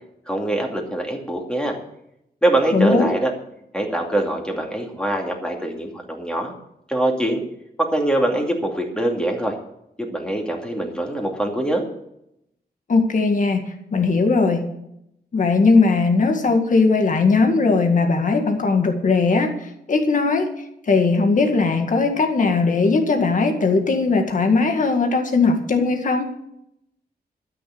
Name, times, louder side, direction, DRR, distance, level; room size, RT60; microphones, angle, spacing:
voice 1, 0.3-1.8 2.4-3.3 3.7-6.5 6.9-7.4 7.8-9.5 10.0-11.9, right 1 dB, 5° left, 1 dB, 2.4 m, -23 dB
voice 2, 2.7-3.2 12.9-14.7 15.3-20.5 20.8-26.3, left 4 dB, 50° left, 4 dB, 1.9 m, -19 dB
12.5 x 6.7 x 8.8 m, 0.79 s
wide cardioid pair, 125°, 16 cm